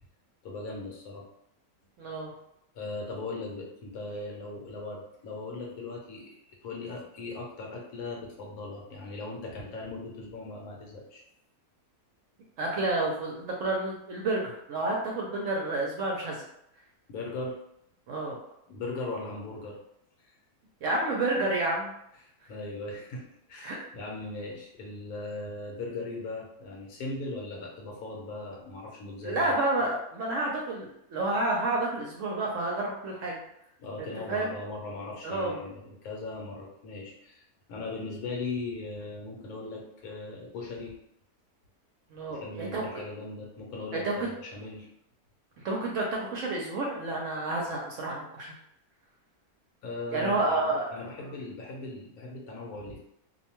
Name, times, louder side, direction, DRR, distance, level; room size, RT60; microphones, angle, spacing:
voice 1, 0.4-1.3 2.7-11.2 17.1-17.6 18.7-19.8 22.2-29.5 33.8-37.4 37.7-40.9 42.3-44.9 49.8-53.0, left 3 dB, 75° left, -1 dB, 1.2 m, -39 dB
voice 2, 2.0-2.3 12.6-16.4 18.1-18.4 20.8-21.9 23.6-23.8 29.2-33.4 34.0-34.5 35.2-35.6 42.1-42.8 44.0-44.1 45.6-48.5 50.1-51.3, right 2 dB, 65° right, -1 dB, 0.8 m, -30 dB
2.6 x 2.2 x 2.9 m, 0.76 s
omnidirectional pair, 1.6 m